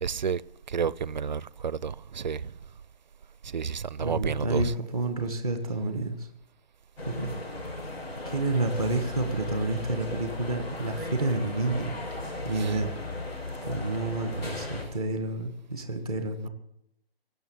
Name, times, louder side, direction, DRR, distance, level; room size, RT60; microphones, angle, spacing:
voice 1, 0.0-0.4 0.7-2.5 3.4-4.8 12.5-12.8, right 6 dB, 50° right, 0.4 m, -30 dB
voice 2, 4.0-4.7 4.9-6.3 7.1-7.3 8.2-12.0 12.4-12.9 13.7-16.5, right 2 dB, 5° left, 0.5 m, -29 dB
sound 1, 7.0-14.8, left 2 dB, 85° left, 6.2 m, -36 dB
17.5 x 6.9 x 8.6 m
hypercardioid pair, 170°, 30 cm